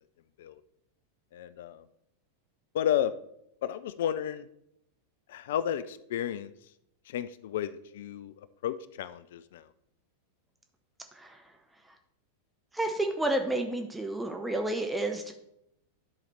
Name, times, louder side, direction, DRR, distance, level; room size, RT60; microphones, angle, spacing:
voice 1, 1.3-1.8 2.7-3.1 3.6-4.5 5.3-6.5 7.1-9.7, left 10 dB, 55° left, 14 dB, 0.3 m, -32 dB
voice 2, 11.1-11.5 12.7-15.3, right 1 dB, 5° right, 4 dB, 0.7 m, -30 dB
11.0 x 4.2 x 4.3 m, 0.78 s
figure-of-eight pair, 90°, 0 cm